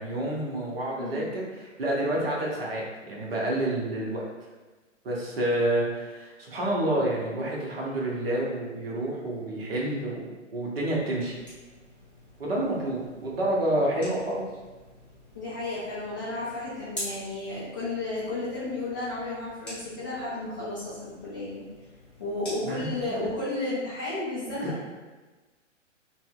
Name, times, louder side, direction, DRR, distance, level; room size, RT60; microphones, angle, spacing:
voice 1, 0.0-4.3 5.0-11.4 12.4-14.4 22.6-22.8 24.6-24.7, right 1 dB, 50° right, -3 dB, 0.9 m, -29 dB
voice 2, 1.0-1.3 15.3-21.7 22.2-24.8, left 2 dB, 20° left, -12 dB, 0.4 m, -33 dB
sound 1, 11.0-23.4, equal, 5° left, 1.2 m, -46 dB
4.0 x 2.1 x 2.4 m, 1.3 s
figure-of-eight pair, 115°, 38 cm